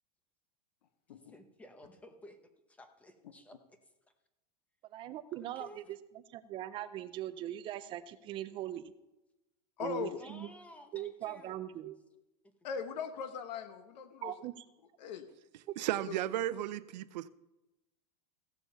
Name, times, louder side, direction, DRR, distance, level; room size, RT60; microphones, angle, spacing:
voice 1, 1.1-3.8 5.3-5.8 10.2-11.6 12.4-12.5, left 1 dB, 5° left, 7 dB, 0.9 m, -55 dB
voice 2, 4.8-5.8 6.3-8.9 9.8-10.5 10.9-12.0 14.2-14.7 15.7-15.8, right 12 dB, 25° right, 13 dB, 0.4 m, -40 dB
voice 3, 9.8-10.2 12.6-14.3 15.0-15.3 16.1-16.2, left 7 dB, 85° left, 9 dB, 1.1 m, -39 dB
voice 4, 15.8-17.3, right 13 dB, 85° right, 15 dB, 0.6 m, -34 dB
15.5 x 7.0 x 5.6 m, 0.98 s
supercardioid pair, 160°, 21 cm